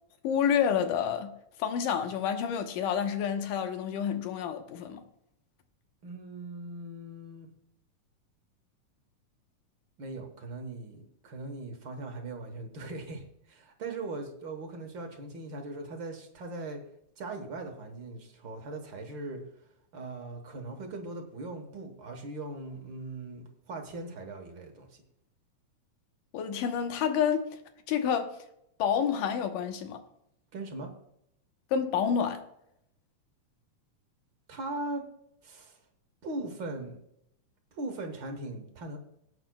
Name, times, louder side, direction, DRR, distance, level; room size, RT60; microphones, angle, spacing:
voice 1, 0.2-5.0 26.3-27.6 27.9-28.4 28.8-30.0 31.7-32.5, left 8 dB, 80° left, 2.6 m, -29 dB
voice 2, 6.0-7.5 10.0-16.8 17.2-19.4 19.9-25.0 30.5-30.9 34.5-35.1 35.4-35.8 36.2-37.0 37.7-39.0, right 2 dB, 55° right, 1.3 m, -39 dB
19.0 x 9.1 x 2.3 m
omnidirectional pair, 3.8 m